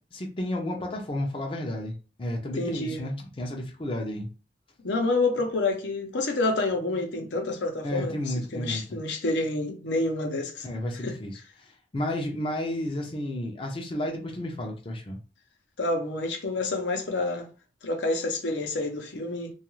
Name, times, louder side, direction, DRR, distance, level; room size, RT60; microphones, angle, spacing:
voice 1, 0.1-4.3 7.8-8.8 10.6-15.2, left 1 dB, 30° left, 0.5 m, -32 dB
voice 2, 2.6-3.0 4.8-10.7 11.0-11.2 15.8-17.5 17.8-19.5, left 2 dB, 85° left, 0.7 m, -28 dB
2.3 x 2.3 x 3.0 m
head